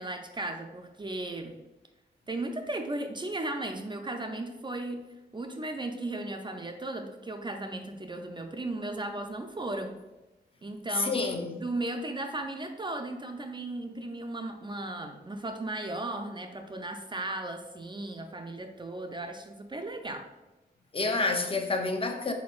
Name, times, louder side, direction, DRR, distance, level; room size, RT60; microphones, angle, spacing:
voice 1, 0.0-1.5 2.3-5.1 5.3-10.0 10.6-11.2 11.5-20.3, right 2 dB, 25° right, 4 dB, 0.3 m, -36 dB
voice 2, 10.9-11.6 20.9-22.3, left 3 dB, 30° left, 5 dB, 0.5 m, -28 dB
4.2 x 4.2 x 2.3 m, 1.0 s
wide cardioid pair, 120°, 18 cm